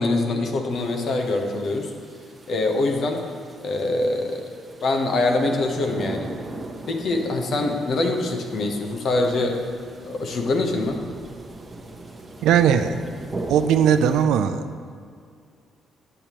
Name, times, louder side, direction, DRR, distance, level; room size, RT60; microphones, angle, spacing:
voice 1, 0.0-1.9 2.5-3.3 3.6-4.4 4.8-6.3 6.9-9.6 10.0-11.0, left 2 dB, 60° left, 3 dB, 0.9 m, -24 dB
sound 1, 0.7-14.2, right 2 dB, 25° right, 0.9 m, -39 dB
voice 2, 12.4-13.0 13.5-14.7, right 8 dB, 85° right, 9 dB, 0.3 m, -18 dB
8.6 x 6.7 x 3.0 m, 2.2 s
cardioid pair, 90°, 0 cm